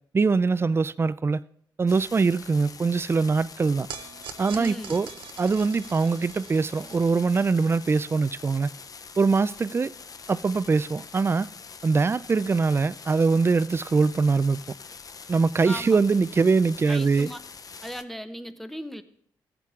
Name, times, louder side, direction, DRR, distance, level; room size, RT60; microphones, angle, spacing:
voice 1, 0.1-1.4 1.8-3.9 4.4-5.1 5.4-8.7 9.2-9.9 10.3-11.5 11.8-14.6 15.3-17.3, right 4 dB, 30° right, 0.3 m, -23 dB
sound 1, 1.9-18.0, left 5 dB, 45° left, 0.5 m, -45 dB
sound 2, 3.9-10.3, right 8 dB, 80° right, 0.6 m, -45 dB
voice 2, 4.5-5.0 15.6-16.0 16.9-17.4 17.8-19.0, equal, ahead, 0.8 m, -37 dB
14.5 x 8.1 x 2.4 m
supercardioid pair, 50°, 9 cm